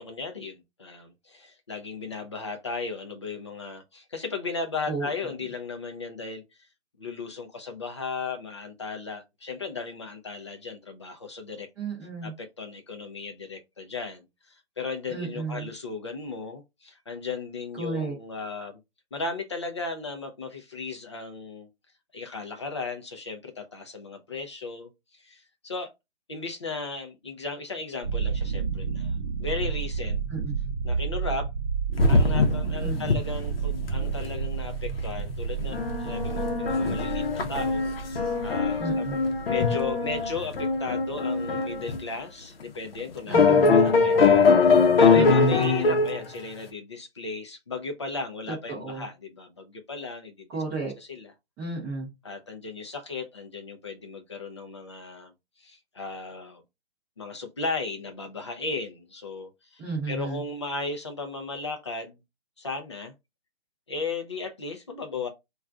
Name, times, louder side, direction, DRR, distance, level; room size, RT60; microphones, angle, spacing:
voice 1, 0.0-6.4 7.0-11.7 12.2-18.8 19.1-21.7 22.1-24.9 25.2-25.9 26.3-30.2 30.8-31.5 32.1-39.1 39.5-50.5 51.1-51.3 52.2-55.3 55.6-56.6 57.2-62.2 62.6-63.1 63.9-65.3, left 4 dB, 30° left, 0.4 m, -36 dB
voice 2, 4.9-5.4 11.8-12.3 15.1-15.7 17.7-18.2 30.3-30.6 32.8-33.2 38.8-39.2 43.3-43.8 45.1-45.7 48.5-49.1 50.5-50.9 51.6-52.1 59.8-60.4, right 3 dB, 10° right, 0.6 m, -33 dB
sound 1, 28.0-42.0, right 6 dB, 40° right, 0.8 m, -31 dB
sound 2, 32.0-32.7 33.0-33.2 33.5-33.6 33.8-34.2 35.2-35.3 35.6-42.0 42.6-42.7 43.3-46.2, left 4 dB, 60° left, 0.7 m, -22 dB
2.3 x 2.2 x 3.7 m
hypercardioid pair, 160°, 32 cm